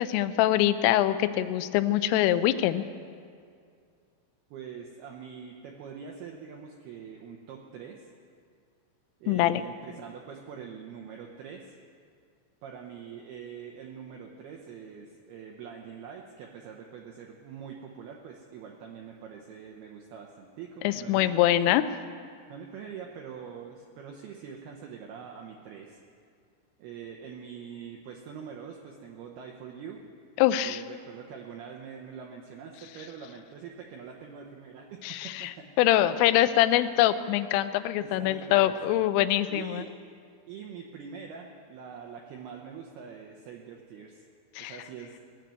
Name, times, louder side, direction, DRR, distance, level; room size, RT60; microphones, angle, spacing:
voice 1, 0.0-2.8 9.3-9.6 20.8-21.8 30.4-30.8 35.0-39.8 44.6-44.7, left 13 dB, 85° left, 12 dB, 3.2 m, -24 dB
voice 2, 4.5-8.1 9.2-11.8 12.6-21.8 22.5-26.0 26.8-30.0 30.6-35.7 35.9-36.4 38.0-39.9 40.5-44.3 44.6-45.2, right 7 dB, 85° right, 1 dB, 2.2 m, -44 dB
19.0 x 7.6 x 9.4 m, 2.3 s
omnidirectional pair, 5.8 m